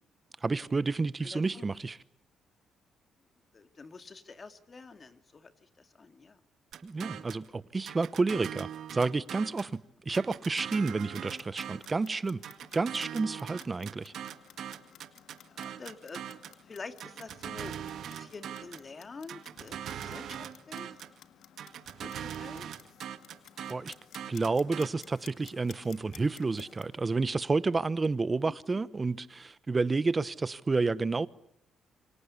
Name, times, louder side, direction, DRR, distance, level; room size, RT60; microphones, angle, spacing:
voice 1, 0.4-2.0 6.8-12.4 12.7-14.1 23.7-23.9 24.3-31.3, right 3 dB, 25° right, 1.0 m, -30 dB
voice 2, 1.2-1.6 3.5-5.5 5.8-6.4 13.6-13.9 15.5-16.2 16.7-20.9 22.0-22.7 28.5-28.6, left 4 dB, 35° left, 2.4 m, -47 dB
sound 1, 6.7-7.5 7.9-9.7 10.1-12.0 12.4-16.6 17.0-18.9 19.3-21.2 21.6-24.9, right 9 dB, 70° right, 1.9 m, -41 dB
Clock, 11.0-27.0, left 10 dB, 75° left, 1.8 m, -56 dB
27.0 x 25.0 x 8.4 m
cardioid pair, 90°, 0 cm